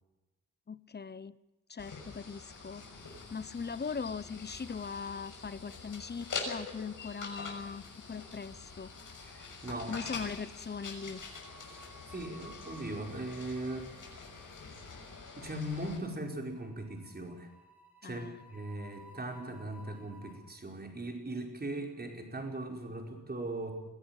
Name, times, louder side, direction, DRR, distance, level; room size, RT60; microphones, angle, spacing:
voice 1, 0.7-1.4 1.7-8.9 9.9-11.3 18.0-18.4, left 5 dB, 30° left, 17 dB, 0.9 m, -40 dB
sound 1, 1.8-16.0, left 4 dB, 75° left, 6.4 m, -45 dB
sound 2, 8.7-9.1 9.4-9.6 10.8-20.4, equal, 5° right, 4.4 m, -57 dB
voice 2, 9.2-10.0 11.6-13.9 15.4-17.5 18.0-23.8, right 1 dB, 30° right, 3 dB, 5.0 m, -39 dB
22.5 x 17.0 x 9.1 m, 1.0 s
wide cardioid pair, 140°, 32 cm